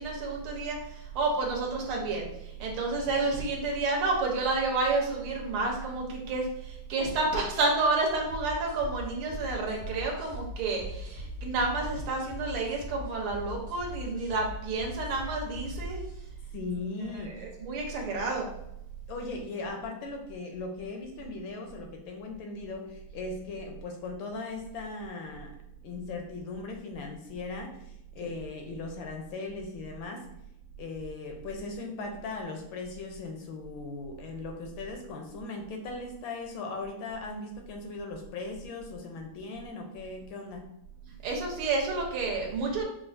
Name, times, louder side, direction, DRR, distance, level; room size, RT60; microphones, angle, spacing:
voice 1, 0.0-16.0 17.1-18.5 41.2-42.8, right 3 dB, 80° right, 0 dB, 1.7 m, -30 dB
sound 1, 8.3-16.3, left 1 dB, 10° right, 0.4 m, -41 dB
voice 2, 16.5-17.5 19.1-25.5 25.8-30.3 30.8-40.6, left 3 dB, 75° left, 3 dB, 1.3 m, -38 dB
5.7 x 2.4 x 2.5 m, 0.82 s
omnidirectional pair, 2.4 m